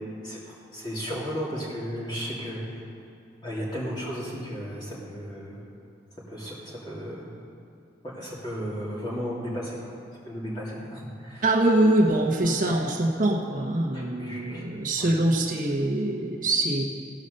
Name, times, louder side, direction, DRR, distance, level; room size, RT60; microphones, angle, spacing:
voice 1, 0.7-2.6 3.4-5.6 6.3-7.3 8.0-9.8 10.3-11.4 12.6-12.7 13.9-14.6 15.0-15.1, equal, 25° left, -7 dB, 2.7 m, -34 dB
voice 2, 11.4-16.8, right 1 dB, 45° right, 0 dB, 1.0 m, -24 dB
16.0 x 5.5 x 6.5 m, 2.6 s
head